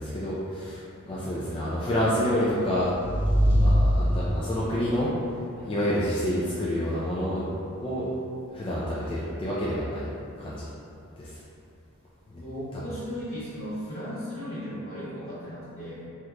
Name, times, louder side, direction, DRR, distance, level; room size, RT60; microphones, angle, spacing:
voice 1, 0.0-2.9 3.4-5.1 5.6-7.5 7.8-8.1 8.5-10.1 10.4-10.7 11.2-11.4 12.3-12.4, equal, 25° left, -8 dB, 0.3 m, -28 dB
sound 1, 2.4-4.6, equal, 25° right, 1.1 m, -23 dB
voice 2, 12.3-16.0, equal, 60° left, -12 dB, 1.5 m, -36 dB
3.6 x 2.9 x 2.2 m, 2.5 s
head